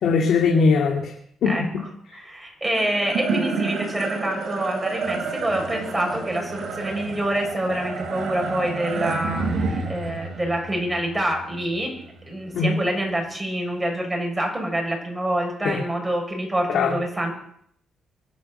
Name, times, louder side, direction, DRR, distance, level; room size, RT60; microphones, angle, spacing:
voice 1, 0.0-1.1 1.4-1.8 12.5-12.8 15.6-15.8 16.7-17.0, left 5 dB, 70° left, 0 dB, 2.6 m, -20 dB
voice 2, 2.1-11.9 12.3-17.3, right 1 dB, 15° right, 2 dB, 7.4 m, -26 dB
sound 1, 2.6-13.1, right 4 dB, 65° right, 4.3 m, -30 dB
24.0 x 8.2 x 7.0 m, 0.66 s
cardioid pair, 90°, 0 cm